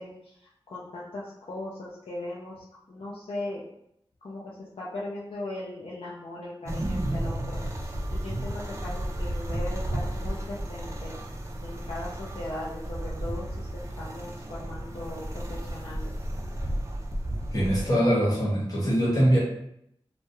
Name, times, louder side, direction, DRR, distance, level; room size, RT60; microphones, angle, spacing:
voice 1, 0.0-2.6 2.9-3.6 4.2-7.6 8.1-11.2 11.6-13.7 14.0-16.1, left 1 dB, 65° left, -8 dB, 0.5 m, -38 dB
sound 1, 6.7-17.9, right 1 dB, 30° right, 0.3 m, -33 dB
voice 2, 17.5-19.4, equal, 40° left, -6 dB, 1.1 m, -23 dB
2.2 x 2.1 x 2.8 m, 0.74 s
wide cardioid pair, 75°, 10 cm